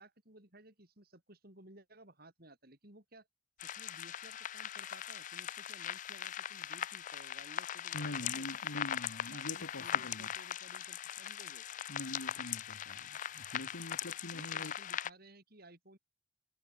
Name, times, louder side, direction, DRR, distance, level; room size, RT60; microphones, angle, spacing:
voice 1, 0.0-3.3 3.6-8.6 9.2-11.7 14.3-16.0, right 1 dB, 50° right, 5.4 m, -58 dB
sound 1, 3.6-15.1, left 10 dB, 40° left, 0.4 m, -40 dB
voice 2, 7.9-10.3 11.9-14.7, left 1 dB, 85° left, 2.2 m, -44 dB
head